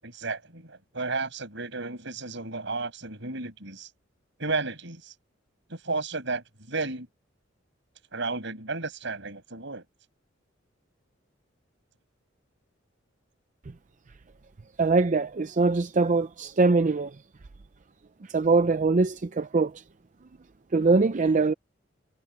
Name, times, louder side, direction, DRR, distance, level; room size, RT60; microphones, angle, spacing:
voice 1, 0.0-3.9 4.4-5.1 5.7-7.1 8.1-9.9, right 3 dB, 70° right, 7.4 m, -33 dB
voice 2, 14.8-17.1 18.3-19.7 20.7-21.5, right 3 dB, 40° right, 0.5 m, -22 dB
head